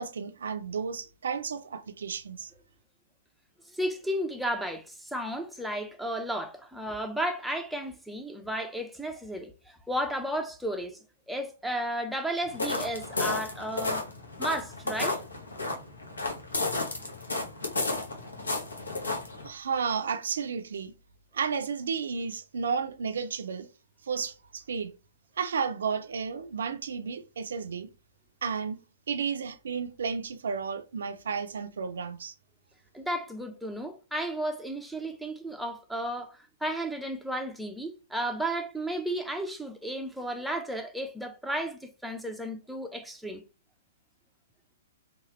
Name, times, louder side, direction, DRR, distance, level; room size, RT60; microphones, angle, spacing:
voice 1, 0.0-2.5 19.4-20.9 21.3-23.7 24.0-24.9 25.4-27.9 28.4-28.8 29.1-32.3, right 6 dB, 75° right, 0.4 m, -32 dB
voice 2, 3.7-14.1 14.4-15.2 32.9-43.4, right 1 dB, ahead, 0.4 m, -33 dB
sound 1, 12.4-19.5, left 2 dB, 90° left, 0.8 m, -32 dB
3.0 x 2.3 x 2.9 m
hypercardioid pair, 125°, 0 cm